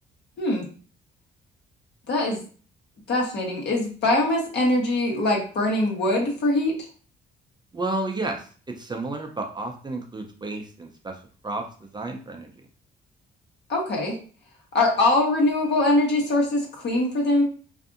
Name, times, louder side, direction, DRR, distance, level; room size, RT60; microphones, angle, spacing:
voice 1, 2.1-2.4 3.1-6.7 13.7-14.1 14.7-17.4, left 2 dB, 60° left, -1 dB, 1.1 m, -22 dB
voice 2, 7.7-8.5 8.8-11.1 11.4-11.6 11.9-12.5, right 2 dB, 20° right, 2 dB, 0.5 m, -31 dB
2.6 x 2.5 x 2.4 m, 0.40 s
cardioid pair, 90°, 20 cm